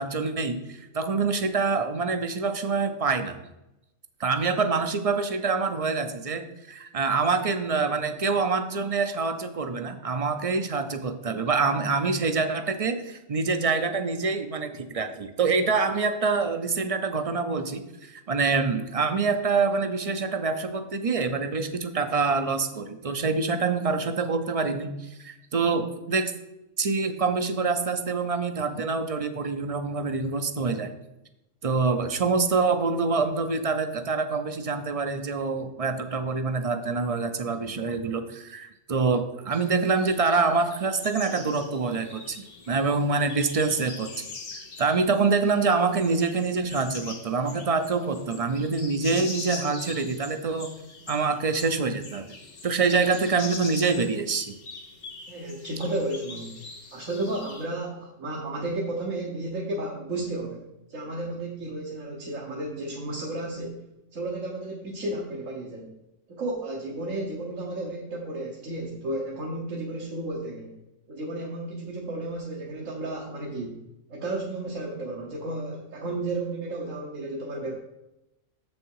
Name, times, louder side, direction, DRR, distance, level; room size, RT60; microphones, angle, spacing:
voice 1, 0.0-3.4 4.2-26.3 26.8-30.9 31.6-44.1 44.8-50.7 51.1-52.4 52.6-54.5, right 4 dB, 45° right, 8 dB, 0.4 m, -26 dB
sound 1, 39.5-57.7, left 4 dB, 80° left, 1.8 m, -43 dB
voice 2, 55.3-56.6 56.9-60.6 60.9-63.8 64.1-65.9 66.3-70.8 71.1-73.8 74.1-77.7, right 2 dB, 80° right, -2 dB, 1.5 m, -33 dB
7.2 x 6.3 x 4.7 m, 0.92 s
omnidirectional pair, 1.3 m